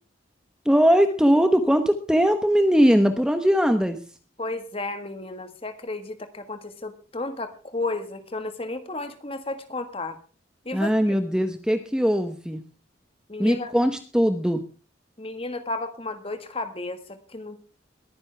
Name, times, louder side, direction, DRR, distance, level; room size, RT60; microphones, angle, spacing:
voice 1, 0.6-4.0 10.7-12.6 13.4-14.6, equal, 5° right, 7 dB, 1.0 m, -20 dB
voice 2, 4.4-10.2 10.6-10.9 13.3-13.7 15.2-17.6, left 2 dB, 30° left, 9 dB, 1.6 m, -33 dB
22.0 x 9.8 x 3.4 m, 0.35 s
head